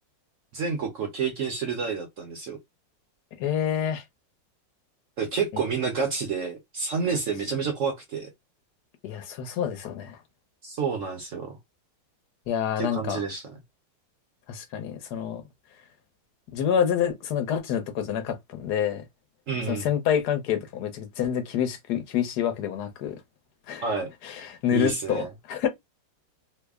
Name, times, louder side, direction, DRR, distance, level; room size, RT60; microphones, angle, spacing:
voice 1, 0.5-2.6 5.2-8.3 10.6-11.6 12.8-13.4 19.5-19.9 23.8-24.1 24.7-25.3, right 5 dB, 60° right, 0.9 m, -29 dB
voice 2, 3.4-4.0 5.5-5.6 9.0-10.2 12.5-13.2 14.5-15.4 16.5-19.0 19.7-23.2 23.7-23.8 24.2-25.7, left 9 dB, 65° left, 1.3 m, -27 dB
3.3 x 2.1 x 3.5 m
omnidirectional pair, 2.0 m